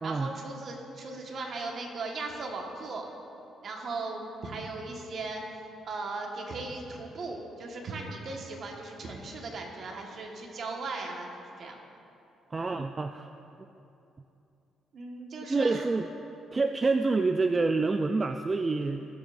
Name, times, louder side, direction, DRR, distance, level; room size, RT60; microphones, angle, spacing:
voice 1, 0.0-3.1 3.6-5.4 5.8-11.7 14.9-15.9, right 3 dB, 55° right, 0 dB, 1.5 m, -37 dB
voice 2, 12.5-13.3 15.5-16.1 16.5-19.1, right 3 dB, 30° right, 7 dB, 0.3 m, -27 dB
18.5 x 7.1 x 2.6 m, 2.8 s
cardioid pair, 90°, 0 cm